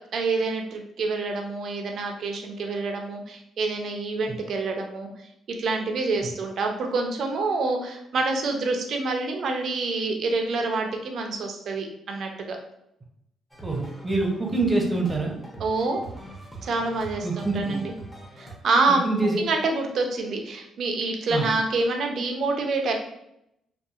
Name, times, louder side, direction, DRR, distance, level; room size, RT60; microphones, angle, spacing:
voice 1, 0.1-5.1 5.6-12.6 15.6-16.0 16.6-17.9 18.4-19.1 19.4-22.9, right 3 dB, 65° right, 3 dB, 0.5 m, -27 dB
sound 1, 13.5-18.6, right 2 dB, 10° left, 0.9 m, -42 dB
voice 2, 13.6-15.3 17.2-17.8 18.9-19.4 21.3-21.5, right 3 dB, 20° right, 0 dB, 0.7 m, -25 dB
2.7 x 2.4 x 2.4 m, 0.79 s
cardioid pair, 90°, 0 cm